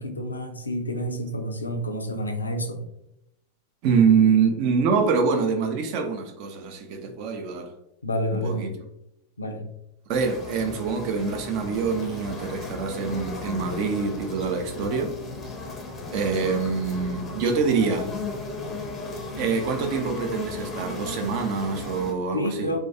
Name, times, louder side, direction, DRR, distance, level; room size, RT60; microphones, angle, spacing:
voice 1, 0.0-2.9 8.0-8.7 9.4-9.6 22.3-22.8, equal, 80° left, 0.3 m, -29 dB
voice 2, 3.8-7.7 8.3-8.7 10.1-15.1 16.1-18.1 19.4-22.7, right 5 dB, 45° right, 0.4 m, -25 dB
sound 1, 10.1-22.1, left 3 dB, 15° left, 0.5 m, -35 dB
2.2 x 2.2 x 2.7 m
figure-of-eight pair, 90°, 0 cm